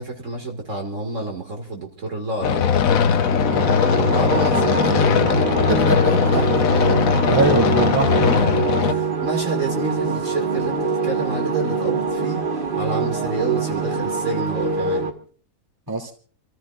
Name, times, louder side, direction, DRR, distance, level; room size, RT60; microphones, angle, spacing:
voice 1, 0.0-2.7 3.9-6.0 6.3-6.5 8.3-8.5 8.8-12.4 12.7-15.0, right 3 dB, 55° right, 1 dB, 2.4 m, -29 dB
sound 1, 2.4-8.9, left 7 dB, 65° left, 1.2 m, -19 dB
sound 2, 3.2-15.1, right 4 dB, 35° right, 1.4 m, -24 dB
voice 2, 5.7-6.4 7.2-8.2 15.9-16.1, right 2 dB, 15° right, 1 dB, 2.5 m, -22 dB
29.0 x 14.5 x 2.4 m, 0.43 s
omnidirectional pair, 1.6 m